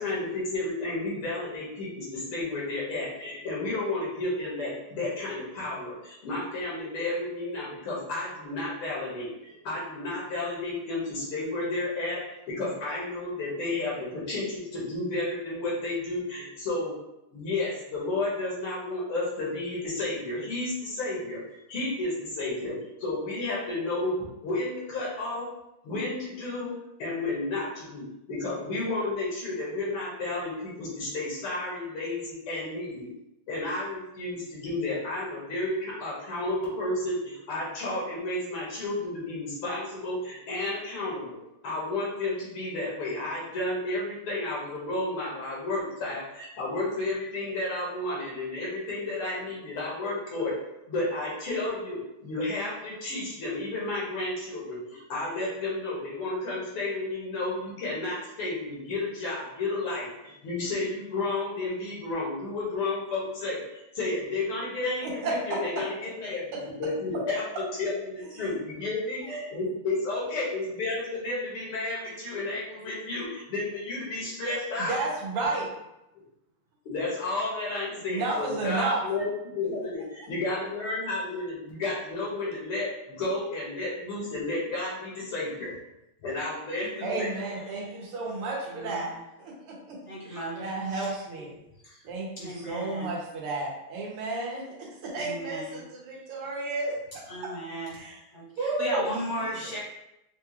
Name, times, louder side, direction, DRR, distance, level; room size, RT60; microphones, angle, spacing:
voice 1, 0.0-16.9 17.3-21.4 21.7-22.7 23.0-25.4 25.8-26.7 27.0-33.1 33.5-41.4 41.6-50.5 50.9-67.4 67.8-75.0 76.9-85.7 86.2-87.3, left 2 dB, 85° left, -6 dB, 2.3 m, -32 dB
voice 2, 65.0-65.6 68.2-68.5 69.2-69.6 74.8-75.7 78.1-79.0 87.0-89.1 89.4-90.0 90.2-91.5 92.0-96.9 97.4-97.5 97.9-98.2 98.6-99.7, right 3 dB, 85° right, -3 dB, 2.0 m, -32 dB
voice 3, 86.8-87.9 88.6-89.2 90.1-91.1 91.4-91.5 91.8-92.0 92.4-93.2 95.1-95.8 97.3-98.0 98.3-99.8, equal, 50° left, -5 dB, 0.9 m, -37 dB
5.5 x 2.4 x 3.0 m, 0.89 s
omnidirectional pair, 2.4 m